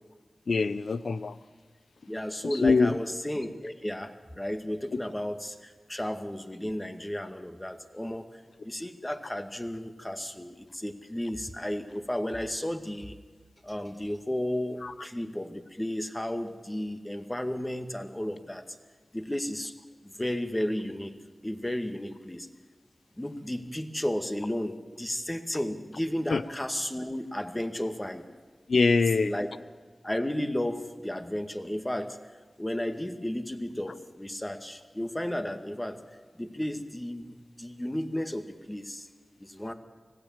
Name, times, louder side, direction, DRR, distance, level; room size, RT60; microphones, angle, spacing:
voice 1, 0.5-1.3 2.4-3.0 14.8-14.9 26.3-26.4 28.7-29.3, left 4 dB, 85° left, 14 dB, 0.8 m, -24 dB
voice 2, 2.1-13.2 13.6-18.6 19.1-19.7 20.0-21.1 21.4-22.5 23.2-28.2 29.3-29.5 30.0-32.2 32.6-36.0 36.4-39.1 39.4-39.7, left 1 dB, 15° left, 7 dB, 2.0 m, -33 dB
25.0 x 17.0 x 7.4 m, 1.4 s
cardioid pair, 45°, 0 cm